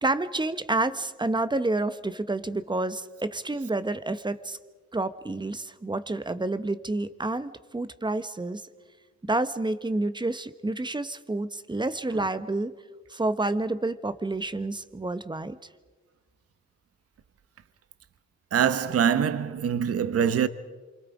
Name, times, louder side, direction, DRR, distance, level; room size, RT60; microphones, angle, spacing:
voice 1, 0.0-4.6 4.9-8.6 9.3-12.7 13.1-15.6, right 2 dB, 15° right, 1.3 m, -29 dB
voice 2, 18.5-20.5, right 8 dB, 50° right, 1.2 m, -24 dB
27.5 x 25.5 x 5.0 m
cardioid pair, 90°, 30 cm